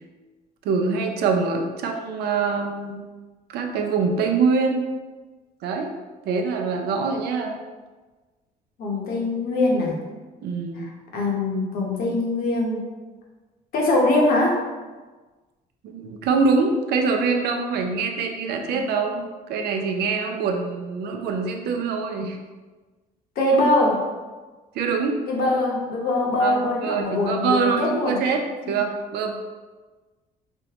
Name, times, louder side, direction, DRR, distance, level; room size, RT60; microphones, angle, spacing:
voice 1, 0.6-3.0 3.5-4.9 5.6-5.9 6.2-7.6 10.4-10.9 15.8-22.4 24.7-25.2 26.4-29.3, right 4 dB, 70° right, 3 dB, 0.5 m, -24 dB
voice 2, 8.8-10.0 10.7-12.8 13.7-14.6 18.4-18.8 23.4-24.0 25.3-28.2, left 2 dB, 60° left, -2 dB, 0.9 m, -22 dB
4.4 x 2.1 x 2.9 m, 1.3 s
cardioid pair, 110°, 17 cm